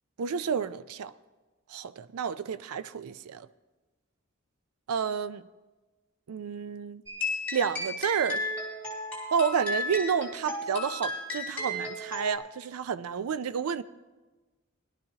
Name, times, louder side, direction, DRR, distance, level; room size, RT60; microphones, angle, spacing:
voice 1, 0.2-1.1 1.7-3.5 4.9-5.5 6.3-7.0 7.5-8.4 9.3-13.8, right 6 dB, 85° right, 0.4 m, -30 dB
sound 1, 7.1-12.4, left 1 dB, 10° left, 2.8 m, -34 dB
18.5 x 12.0 x 2.8 m
head